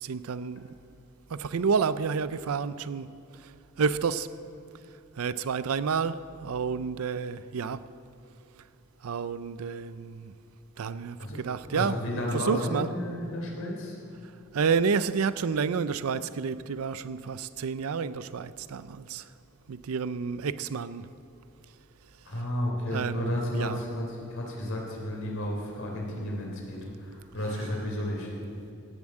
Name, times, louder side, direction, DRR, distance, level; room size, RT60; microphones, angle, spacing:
voice 1, 0.0-0.7 1.3-3.1 3.8-4.3 5.2-7.8 9.0-10.3 10.8-12.0 12.3-12.9 14.5-19.2 19.7-21.1 22.9-23.8, right 5 dB, 85° right, 0.5 m, -29 dB
voice 2, 11.7-14.0 22.2-28.3, left 1 dB, 70° left, 3.4 m, -32 dB
17.0 x 7.2 x 7.5 m
head